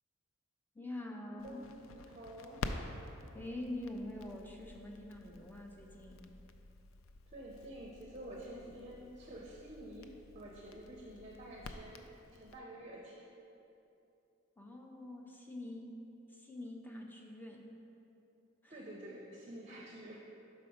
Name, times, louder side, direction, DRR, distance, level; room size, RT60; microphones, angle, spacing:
voice 1, 0.7-1.6 3.3-6.3 14.6-15.9 16.3-17.7 18.6-18.8, left 1 dB, 10° left, 0 dB, 0.5 m, -45 dB
voice 2, 1.3-2.6 7.3-13.2 18.7-20.2, right 1 dB, 35° right, -2 dB, 0.5 m, -49 dB
Crackle, 1.4-12.6, left 3 dB, 75° left, 0.4 m, -49 dB
5.8 x 4.3 x 5.0 m, 2.9 s
head